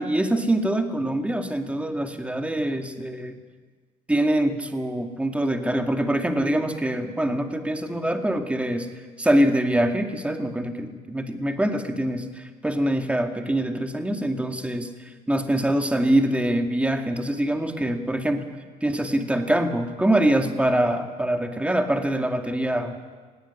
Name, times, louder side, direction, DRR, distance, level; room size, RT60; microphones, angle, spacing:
voice 1, 0.0-3.4 4.1-8.9 9.2-14.9 15.3-18.4 18.8-23.0, right 1 dB, 5° right, 5 dB, 2.1 m, -24 dB
19.0 x 17.0 x 9.9 m, 1.5 s
cardioid pair, 110°, 17 cm